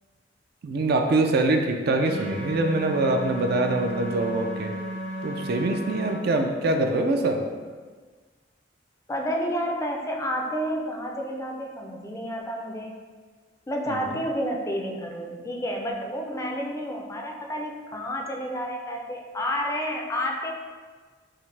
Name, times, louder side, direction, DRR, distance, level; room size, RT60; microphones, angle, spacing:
voice 1, 0.6-4.7 5.2-7.4 13.9-14.1, right 2 dB, 55° right, 4 dB, 0.4 m, -24 dB
sound 1, 2.0-6.1, equal, 85° right, 1.4 m, -34 dB
voice 2, 9.1-12.9 13.7-20.5, equal, 15° left, 1 dB, 0.4 m, -30 dB
5.7 x 2.1 x 3.2 m, 1.5 s
head